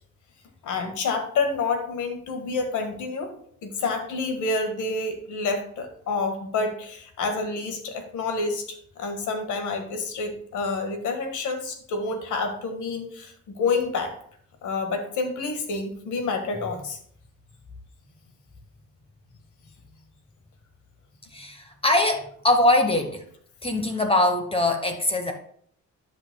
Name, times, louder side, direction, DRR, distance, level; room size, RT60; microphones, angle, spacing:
voice 1, 0.6-3.3 3.6-14.1 14.6-17.0, left 3 dB, 80° left, 5 dB, 1.7 m, -28 dB
voice 2, 21.3-23.2 23.6-25.3, left 1 dB, 20° left, 5 dB, 1.0 m, -22 dB
13.0 x 5.6 x 2.3 m, 0.63 s
cardioid pair, 90°, 30 cm